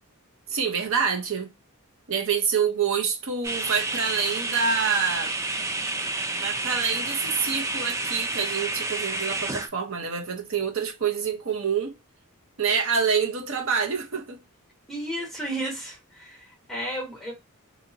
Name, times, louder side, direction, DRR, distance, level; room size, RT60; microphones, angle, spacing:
voice 1, 0.5-1.5 2.1-5.3 6.3-11.9 12.6-14.4, right 6 dB, 65° right, 0.8 m, -26 dB
sound 1, 3.4-9.7, right 2 dB, 15° right, 0.3 m, -29 dB
voice 2, 14.9-17.3, right 1 dB, ahead, 1.2 m, -33 dB
2.8 x 2.6 x 2.8 m
head